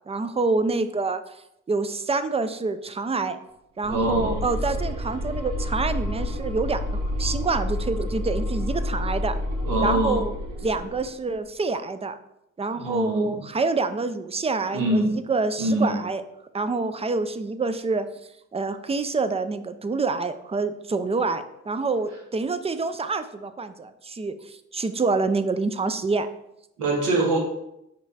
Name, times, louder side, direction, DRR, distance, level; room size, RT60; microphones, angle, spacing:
voice 1, 0.1-1.3 1.7-3.4 3.8-9.4 9.8-10.3 10.6-12.2 12.6-16.2 16.5-18.1 18.5-26.3, right 3 dB, 20° right, 11 dB, 0.5 m, -27 dB
sound 1, 3.8-11.1, left 1 dB, 55° right, 1.5 m, -29 dB
voice 2, 3.8-4.4 9.6-10.2 12.7-13.4 14.7-15.1 15.6-15.9 26.8-27.4, right 1 dB, 85° right, -2 dB, 2.0 m, -23 dB
5.2 x 4.7 x 4.1 m, 0.83 s
cardioid pair, 90°, 30 cm